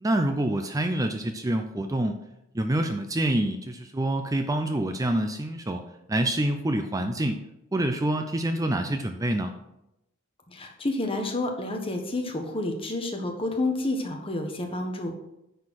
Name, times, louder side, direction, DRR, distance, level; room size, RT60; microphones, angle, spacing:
voice 1, 0.0-2.2 2.5-5.8 6.1-7.4 7.7-9.5, right 1 dB, 15° right, 6 dB, 0.5 m, -26 dB
voice 2, 10.5-15.1, left 2 dB, 25° left, 3 dB, 1.3 m, -29 dB
9.6 x 4.5 x 6.3 m, 0.87 s
head